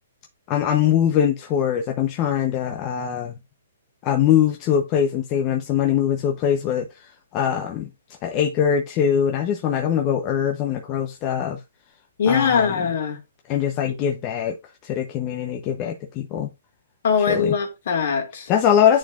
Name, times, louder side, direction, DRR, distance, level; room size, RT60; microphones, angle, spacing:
voice 1, 0.5-3.4 4.0-6.9 7.3-7.9 8.2-11.6 12.3-12.8 13.5-14.6 14.8-16.5 17.3-17.5 18.5-19.0, left 9 dB, 25° left, 0.8 m, -22 dB
voice 2, 12.2-13.2 17.0-18.5, left 6 dB, 60° left, 2.6 m, -21 dB
10.0 x 4.3 x 2.5 m
hypercardioid pair, 155°, 0 cm